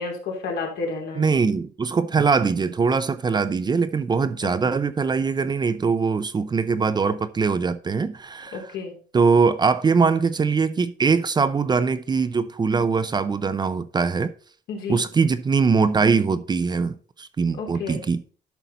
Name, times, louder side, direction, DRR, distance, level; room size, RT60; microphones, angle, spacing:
voice 1, 0.0-1.3 4.4-4.8 8.5-8.9 14.7-15.0 17.5-18.0, left 4 dB, 75° left, 3.2 m, -31 dB
voice 2, 1.2-8.7 9.1-14.3 14.9-18.2, right 5 dB, 25° right, 0.6 m, -22 dB
11.5 x 5.7 x 4.0 m
cardioid pair, 110°, 17 cm